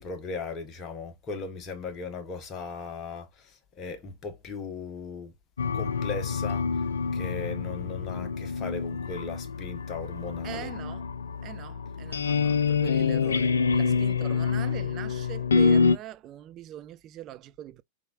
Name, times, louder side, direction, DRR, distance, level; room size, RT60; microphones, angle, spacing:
voice 1, 0.0-5.3 5.7-6.7 7.1-10.7, left 4 dB, 30° left, 1.2 m, -37 dB
sound 1, 5.6-16.0, left 5 dB, 70° left, 0.3 m, -27 dB
voice 2, 10.4-11.1 11.4-17.8, right 12 dB, 35° right, 0.4 m, -42 dB
4.8 x 3.6 x 2.4 m
figure-of-eight pair, 90°, 0 cm